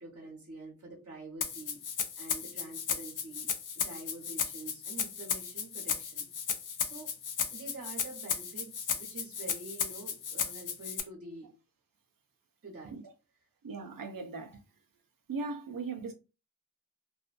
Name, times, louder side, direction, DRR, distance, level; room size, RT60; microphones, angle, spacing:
voice 1, 0.0-1.8 2.2-6.3 6.8-7.1 7.5-11.5 12.6-12.9, right 2 dB, 45° right, 1.1 m, -47 dB
Rattle (instrument), 1.4-11.0, left 7 dB, 70° left, 0.5 m, -35 dB
voice 2, 13.6-14.6 15.3-16.1, right 4 dB, 85° right, 0.7 m, -38 dB
2.5 x 2.2 x 2.5 m
wide cardioid pair, 55°, 33 cm